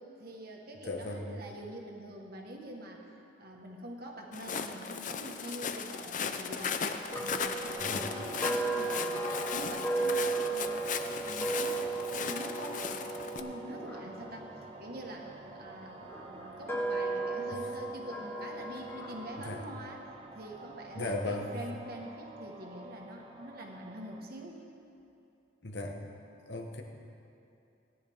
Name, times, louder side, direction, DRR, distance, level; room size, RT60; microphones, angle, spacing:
voice 1, 0.2-3.1 3.4-10.8 11.0-14.5 14.8-20.0 20.3-24.7, right 1 dB, 50° right, 0 dB, 1.4 m, -45 dB
voice 2, 0.9-1.4 7.8-8.1 17.5-17.6 19.4-19.6 20.9-21.5 25.6-26.0 26.4-26.8, left 2 dB, 60° left, 2 dB, 1.2 m, -37 dB
Walk footsteps, 4.3-13.4, left 6 dB, 40° left, 0.5 m, -37 dB
sound 1, 7.1-15.3 16.0-19.5, right 3 dB, 10° left, 1.1 m, -35 dB
sound 2, 7.1-24.2, right 2 dB, 25° right, 0.7 m, -48 dB
17.5 x 10.5 x 3.6 m, 2.6 s
head